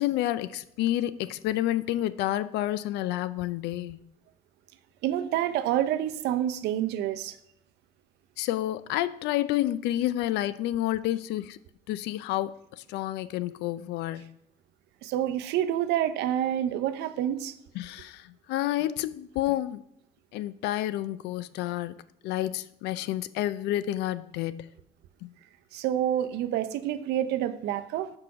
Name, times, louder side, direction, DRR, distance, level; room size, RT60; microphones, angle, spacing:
voice 1, 0.0-4.0 8.4-11.6 11.9-14.3 17.7-19.8 20.3-21.9 22.2-24.7 25.2-25.3, left 14 dB, 85° left, 0.5 m, -29 dB
voice 2, 5.0-7.4 15.0-17.6 25.7-28.1, right 11 dB, 80° right, 0.6 m, -28 dB
6.1 x 4.8 x 5.9 m
cardioid pair, 110°, 17 cm